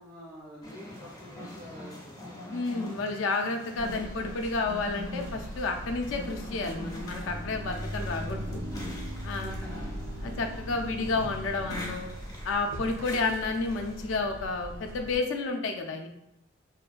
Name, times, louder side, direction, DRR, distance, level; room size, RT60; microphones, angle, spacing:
voice 1, 0.0-2.5 9.4-9.7, equal, 65° right, -5 dB, 1.0 m, -47 dB
sound 1, 0.6-14.2, left 1 dB, 20° left, 0.4 m, -43 dB
voice 2, 2.5-8.6 9.2-9.6 10.2-12.1 12.4-16.1, left 3 dB, 85° left, 3 dB, 0.4 m, -31 dB
sound 2, 3.7-15.2, equal, 85° right, 0.4 m, -41 dB
sound 3, 7.2-12.2, equal, 30° right, 0.5 m, -41 dB
2.6 x 2.2 x 2.4 m, 0.83 s
head